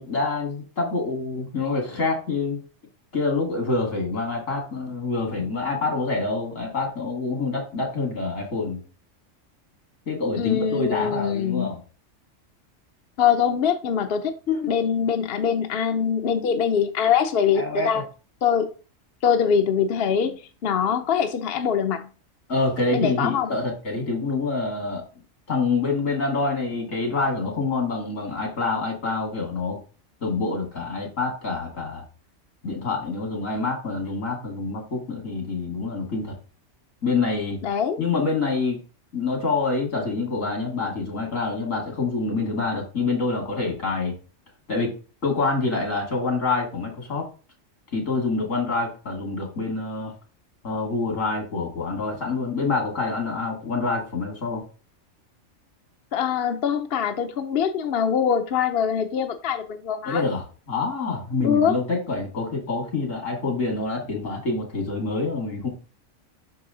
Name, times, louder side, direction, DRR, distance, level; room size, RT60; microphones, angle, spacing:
voice 1, 0.0-2.6 3.1-8.8 10.1-11.8 14.5-14.7 17.5-18.0 22.5-25.0 25.5-29.8 30.2-32.0 32.6-36.4 37.0-37.6 38.0-38.8 39.1-44.2 44.7-44.9 45.2-47.3 47.9-50.1 50.6-54.6 60.0-65.7, left 3 dB, 80° left, 2.8 m, -26 dB
voice 2, 10.4-11.7 13.2-14.3 14.7-18.0 18.4-18.7 19.2-22.1 22.9-23.6 37.6-38.0 56.1-60.2 61.4-61.7, left 7 dB, 55° left, 0.8 m, -23 dB
6.2 x 4.8 x 3.8 m
omnidirectional pair, 1.3 m